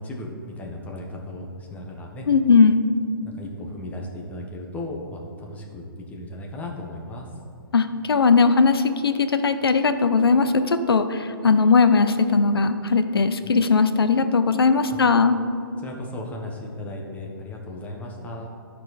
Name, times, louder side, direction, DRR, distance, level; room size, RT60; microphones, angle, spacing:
voice 1, 0.0-2.3 3.2-7.3 14.9-15.0 15.8-18.5, left 1 dB, 10° left, 0 dB, 1.1 m, -36 dB
voice 2, 2.3-2.8 7.7-15.4, left 4 dB, 90° left, 9 dB, 0.6 m, -19 dB
13.0 x 4.6 x 4.1 m, 2.4 s
hypercardioid pair, 135°, 12 cm